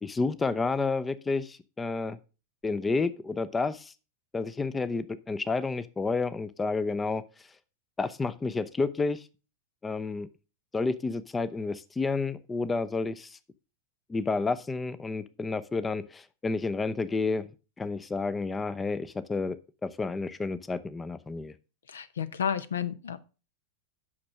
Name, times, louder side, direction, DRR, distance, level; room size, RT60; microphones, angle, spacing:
voice 1, 0.0-2.2 2.6-3.9 4.3-7.2 8.0-9.3 9.8-10.3 10.7-13.4 14.1-17.5 17.8-19.6 19.8-21.5, left 3 dB, 15° left, 15 dB, 0.5 m, -30 dB
voice 2, 21.9-23.2, left 8 dB, 65° left, 15 dB, 0.7 m, -31 dB
8.6 x 6.2 x 5.5 m, 0.33 s
figure-of-eight pair, 90°, 0 cm